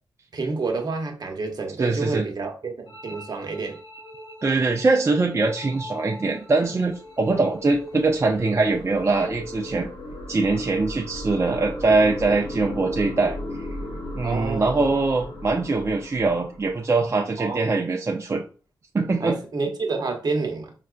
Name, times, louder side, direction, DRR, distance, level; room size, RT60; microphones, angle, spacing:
voice 1, 0.3-3.8 14.2-14.9 17.4-17.8 19.2-20.7, right 3 dB, 55° right, 0.9 m, -29 dB
voice 2, 1.8-2.2 4.4-9.9 10.3-13.4 14.2-18.4 18.9-19.4, right 3 dB, 35° right, 0.5 m, -22 dB
sound 1, 2.9-9.8, equal, 85° left, 1.4 m, -42 dB
sound 2, 6.8-17.2, left 1 dB, 55° left, 1.1 m, -36 dB
4.0 x 2.2 x 2.4 m
cardioid pair, 60°, 8 cm